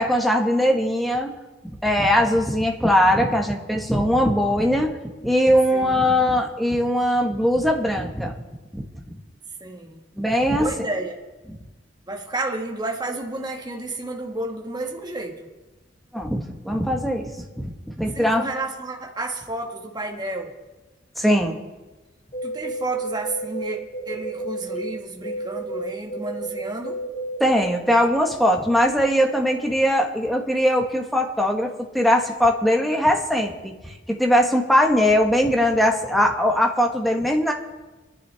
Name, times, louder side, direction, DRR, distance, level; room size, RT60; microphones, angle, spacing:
voice 1, 0.0-1.4 1.8-8.3 8.7-9.0 10.2-10.7 16.1-17.3 17.6-17.7 18.0-18.5 21.2-21.6 27.4-33.7 34.1-37.5, equal, ahead, 1 dB, 1.4 m, -20 dB
voice 2, 5.7-6.0 9.6-10.0 10.5-11.2 12.1-15.5 18.1-20.5 22.4-23.8 24.0-27.0, right 2 dB, 20° right, 0 dB, 1.6 m, -31 dB
sound 1, 22.3-24.9 25.2-27.7, right 1 dB, 35° left, 5.5 m, -31 dB
27.0 x 10.5 x 3.5 m, 1.2 s
head